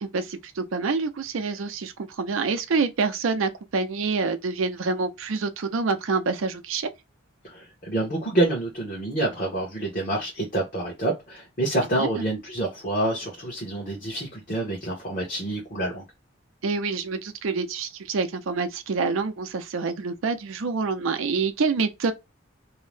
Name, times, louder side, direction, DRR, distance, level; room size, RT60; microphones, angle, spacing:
voice 1, 0.0-6.9 12.0-12.1 16.6-22.1, right 4 dB, 80° right, 0.5 m, -27 dB
voice 2, 7.4-16.0, right 1 dB, 45° left, 0.9 m, -27 dB
2.7 x 2.1 x 3.1 m
head